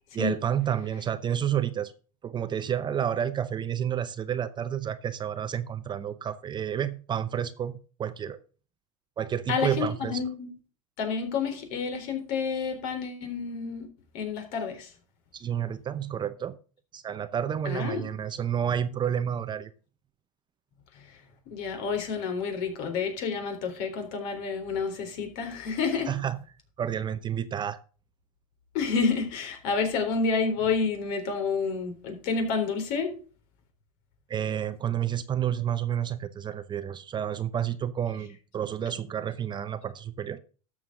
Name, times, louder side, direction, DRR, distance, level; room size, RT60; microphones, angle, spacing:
voice 1, 0.1-1.9 2.2-8.4 9.2-10.2 15.3-16.6 16.9-19.7 26.1-26.4 26.8-27.8 34.3-40.4, right 9 dB, 25° right, 12 dB, 0.7 m, -30 dB
voice 2, 9.5-10.5 11.0-13.9 14.1-14.9 17.6-18.1 20.9-21.1 21.5-26.1 28.7-33.1, left 5 dB, 60° left, 5 dB, 3.8 m, -29 dB
12.5 x 7.3 x 3.7 m, 0.38 s
hypercardioid pair, 110°, 18 cm